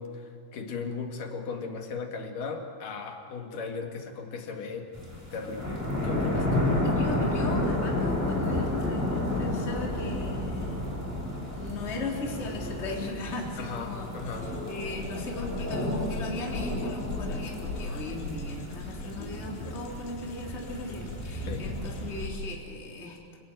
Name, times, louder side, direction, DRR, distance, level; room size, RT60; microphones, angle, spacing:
voice 1, 0.0-4.9 5.3-6.7 13.6-14.5 21.5-21.7, left 5 dB, 50° left, 3 dB, 3.1 m, -37 dB
sound 1, 4.9-22.3, left 1 dB, 5° right, 7.1 m, -31 dB
voice 2, 6.8-10.9 11.5-14.1 14.7-23.4, left 2 dB, 15° left, -2 dB, 3.1 m, -37 dB
sound 2, 14.3-22.6, left 3 dB, 90° left, 4.9 m, -40 dB
28.0 x 17.5 x 9.3 m, 2.1 s
omnidirectional pair, 5.6 m